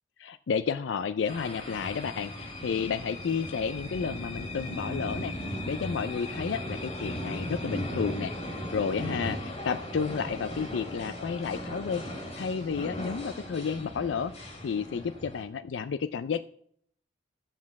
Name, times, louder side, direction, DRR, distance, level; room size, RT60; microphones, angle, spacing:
voice 1, 0.2-5.3 5.7-12.0 12.4-16.4, left 6 dB, 80° left, 12 dB, 0.4 m, -31 dB
sound 1, 1.3-15.4, left 1 dB, 40° left, 2.9 m, -37 dB
13.5 x 7.4 x 7.1 m, 0.66 s
head